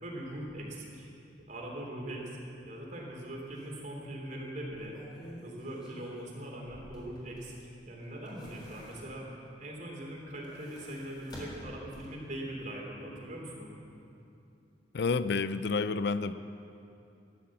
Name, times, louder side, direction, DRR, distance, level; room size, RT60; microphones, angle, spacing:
voice 1, 0.0-1.1 1.5-5.0 5.4-7.6 7.9-9.2 9.6-13.8, right 1 dB, 45° right, -2 dB, 3.3 m, -41 dB
sound 1, 3.0-3.1 3.5-3.7 4.6-7.7 8.0-9.4 10.2-12.3 12.7-12.8, equal, 25° left, 4.0 m, -50 dB
voice 2, 14.9-16.3, left 4 dB, 65° left, 13 dB, 0.5 m, -29 dB
15.0 x 11.5 x 7.7 m, 2.7 s
head